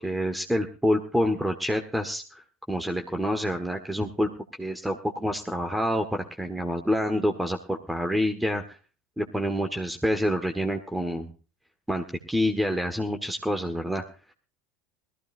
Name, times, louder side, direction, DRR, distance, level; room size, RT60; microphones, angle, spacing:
voice 1, 0.0-2.4 2.7-4.3 4.6-8.8 9.2-11.3 11.9-14.1, equal, 5° right, 5 dB, 1.6 m, -27 dB
21.5 x 14.5 x 2.6 m, 0.35 s
figure-of-eight pair, 75°, 0 cm